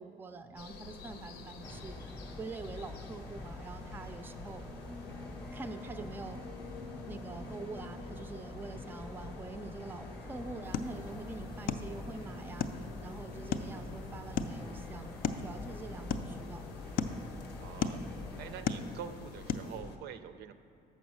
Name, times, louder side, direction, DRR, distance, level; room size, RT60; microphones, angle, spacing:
voice 1, 0.0-4.6 5.5-6.4 7.1-16.6, right 3 dB, 10° right, 9 dB, 0.4 m, -45 dB
sound 1, 0.6-20.0, left 3 dB, 85° left, 0.7 m, -48 dB
sound 2, 1.6-18.6, left 1 dB, 5° left, 0.7 m, -47 dB
sound 3, 10.6-19.8, left 6 dB, 60° left, 0.4 m, -39 dB
voice 2, 17.6-18.0 18.4-20.5, right 9 dB, 75° right, 10 dB, 0.4 m, -45 dB
7.0 x 5.5 x 6.2 m, 2.8 s
cardioid pair, 110°, 17 cm